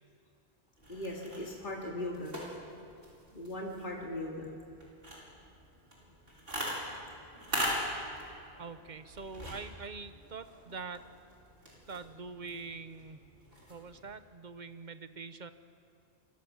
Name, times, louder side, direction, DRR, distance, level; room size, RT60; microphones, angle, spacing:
sound 1, 0.8-14.2, equal, 65° right, 5.9 m, -42 dB
voice 1, 0.9-2.4 3.3-4.5, left 1 dB, 50° left, -2 dB, 2.9 m, -38 dB
voice 2, 8.6-11.1 11.9-13.2 13.7-15.5, right 4 dB, 45° right, 11 dB, 1.2 m, -44 dB
28.0 x 24.5 x 7.3 m, 2.5 s
omnidirectional pair, 1.1 m